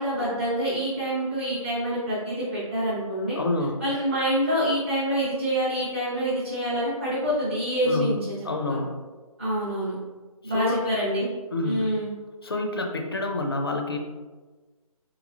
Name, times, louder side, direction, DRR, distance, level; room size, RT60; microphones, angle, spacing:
voice 1, 0.0-3.4 3.8-8.3 8.7-8.8 9.4-10.0 10.4-11.3 11.6-12.1, equal, 20° right, -11 dB, 0.5 m, -26 dB
voice 2, 3.4-3.8 7.8-8.1 8.4-8.9 10.4-10.8 11.5-11.9 12.4-14.0, left 2 dB, 45° left, 3 dB, 0.4 m, -28 dB
3.4 x 3.0 x 2.4 m, 1.3 s
hypercardioid pair, 175°, 19 cm